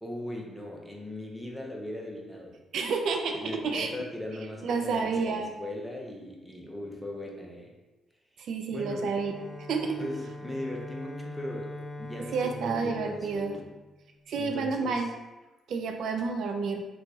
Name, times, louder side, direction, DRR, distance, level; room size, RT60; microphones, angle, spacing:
voice 1, 0.0-2.5 3.4-7.7 8.7-9.1 10.0-13.7 14.3-15.0, left 1 dB, 5° left, -1 dB, 0.7 m, -39 dB
voice 2, 2.7-3.9 4.6-5.5 8.4-10.0 12.3-13.6 14.3-15.1 15.7-16.8, right 4 dB, 70° right, 4 dB, 0.3 m, -30 dB
Bowed string instrument, 9.0-14.2, left 2 dB, 25° left, 0.9 m, -42 dB
2.9 x 2.4 x 3.7 m, 1.1 s
cardioid pair, 90°, 0 cm